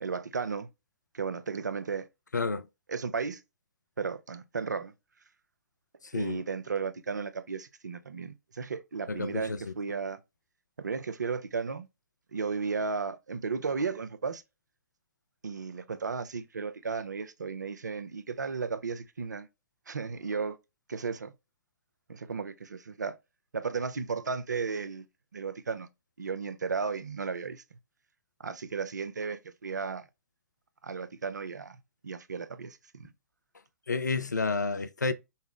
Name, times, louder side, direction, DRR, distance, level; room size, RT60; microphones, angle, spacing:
voice 1, 0.0-0.7 1.1-2.1 2.9-3.4 4.0-4.9 6.1-10.2 10.8-11.9 12.3-14.4 15.4-19.5 19.9-20.6 20.9-21.3 22.1-23.1 23.5-25.1 25.3-25.9 26.2-27.6 28.4-30.0 30.8-33.1, right 5 dB, 80° right, 0.5 m, -34 dB
voice 2, 2.3-2.7 6.1-6.4 9.1-9.6 33.9-35.1, left 3 dB, 90° left, 0.5 m, -30 dB
5.5 x 2.0 x 3.5 m
figure-of-eight pair, 115°, 9 cm